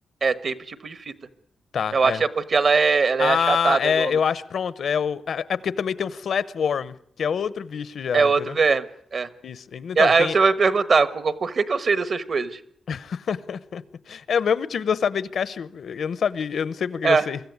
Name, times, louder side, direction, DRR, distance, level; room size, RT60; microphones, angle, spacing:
voice 1, 0.2-1.1 1.9-4.1 8.1-8.9 9.1-9.3 10.0-12.6 17.0-17.2, right 4 dB, 45° right, 1.2 m, -21 dB
voice 2, 1.7-2.2 3.2-8.6 9.4-10.4 12.9-17.4, left 7 dB, 60° left, 0.8 m, -26 dB
24.0 x 14.0 x 9.5 m
wide cardioid pair, 180°, 0 cm